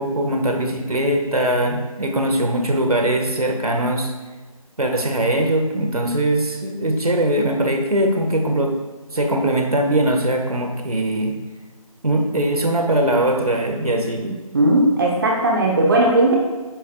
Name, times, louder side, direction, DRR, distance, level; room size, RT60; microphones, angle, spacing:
voice 1, 0.0-4.1 4.8-8.8 9.1-11.4 12.0-14.2, right 1 dB, 80° right, 3 dB, 1.9 m, -21 dB
voice 2, 14.2-16.4, right 1 dB, 35° right, -2 dB, 1.2 m, -17 dB
11.0 x 10.0 x 2.5 m, 1.3 s
figure-of-eight pair, 165°, 19 cm